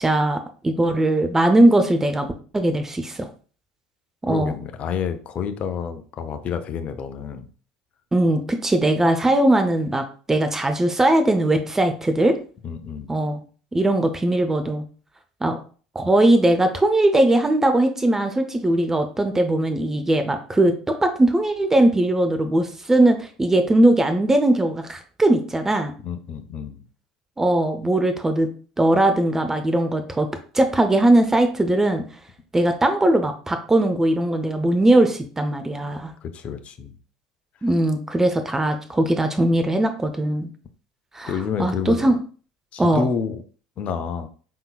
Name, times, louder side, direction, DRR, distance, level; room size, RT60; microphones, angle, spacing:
voice 1, 0.0-2.3 2.5-3.3 4.2-4.5 8.1-12.4 13.1-13.4 13.7-14.8 15.4-15.6 15.9-25.9 27.4-28.5 28.8-30.3 30.5-32.0 32.5-36.1 37.6-40.5 41.1-41.3 41.6-42.2 42.8-43.1, right 1 dB, 15° right, 7 dB, 0.7 m, -19 dB
voice 2, 4.3-7.5 12.6-13.2 26.0-26.9 36.2-37.0 41.3-42.0 42.7-43.4 43.8-44.3, left 6 dB, 45° left, 9 dB, 0.6 m, -29 dB
5.3 x 3.8 x 2.4 m, 0.40 s
figure-of-eight pair, 65°, 3 cm